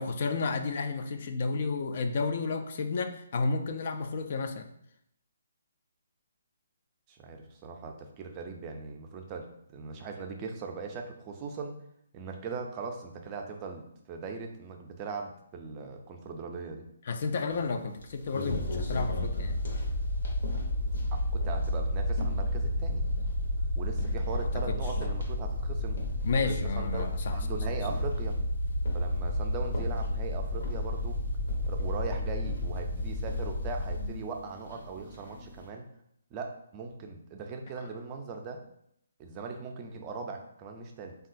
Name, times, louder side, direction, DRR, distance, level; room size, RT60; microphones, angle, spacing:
voice 1, 0.0-4.7 17.1-19.6 24.0-24.1 24.4-24.8 26.2-27.4, left 4 dB, 50° left, 7 dB, 0.3 m, -32 dB
voice 2, 7.1-11.8 12.1-16.8 21.1-23.0 23.8-26.0 26.4-28.4 28.9-31.2 31.7-35.8 36.3-38.6 39.2-41.2, right 4 dB, 25° right, 3 dB, 0.4 m, -40 dB
sound 1, 17.5-35.7, left 2 dB, 65° left, 0.8 m, -45 dB
sound 2, 18.5-34.1, left 1 dB, 85° left, 1.1 m, -31 dB
3.5 x 2.3 x 2.5 m, 0.72 s
hypercardioid pair, 145°, 0 cm